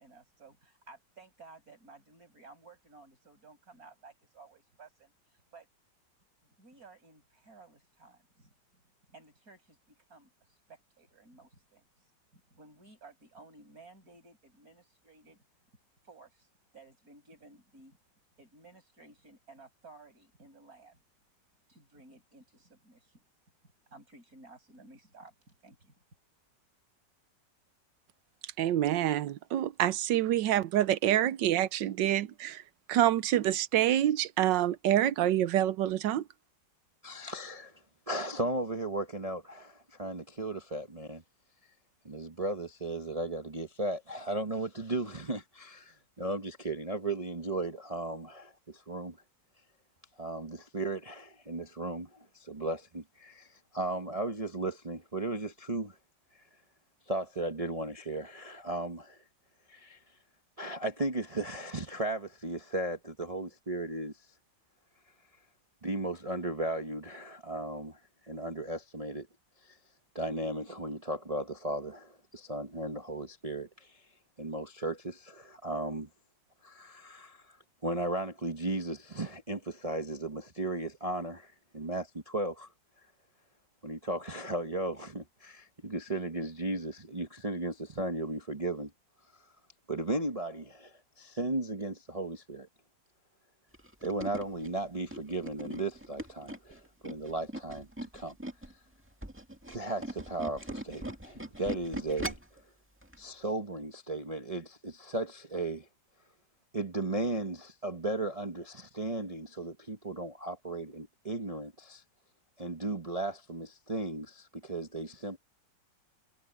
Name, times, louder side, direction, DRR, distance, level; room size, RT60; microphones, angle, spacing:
voice 1, 0.0-5.1 5.5-5.7 6.4-8.5 9.1-12.0 12.3-15.4 16.0-16.5 16.7-18.0 18.4-21.0 21.7-23.2 23.6-26.0, right 3 dB, 50° right, 7.2 m, -56 dB
voice 2, 28.6-32.2 32.9-36.2, right 12 dB, 80° right, 1.4 m, -26 dB
voice 3, 37.0-37.8 38.1-41.2 42.0-49.2 50.2-56.0 56.3-56.4 57.1-59.2 59.7-60.0 60.6-64.1 65.8-69.3 69.6-69.8 70.1-74.0 74.4-76.1 76.6-77.6 77.8-82.7 83.8-88.9 89.9-92.7 94.0-97.9 98.1-98.3 99.7-102.6 103.2-105.9 106.7-112.0 112.6-115.4, right 2 dB, 25° right, 1.0 m, -36 dB
Tools, 93.7-98.7 99.1-102.6 103.0-103.2 103.5-103.6, right 1 dB, 5° right, 1.9 m, -40 dB
omnidirectional pair, 2.0 m